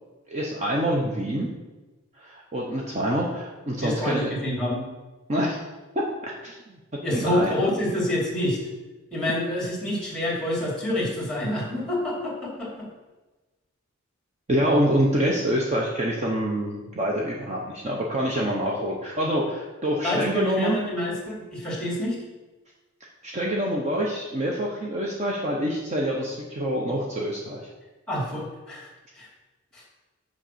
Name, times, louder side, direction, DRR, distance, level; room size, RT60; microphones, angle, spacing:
voice 1, 0.3-1.5 2.2-4.3 5.3-5.6 6.2-7.6 14.5-20.8 23.2-27.6, equal, 35° right, -2 dB, 0.9 m, -26 dB
voice 2, 3.8-4.9 7.0-8.6 9.1-12.9 20.0-22.2 28.1-28.9 29.2-29.3 29.7-29.8, left 1 dB, 5° left, -3 dB, 2.6 m, -27 dB
6.5 x 5.3 x 6.8 m, 1.2 s
head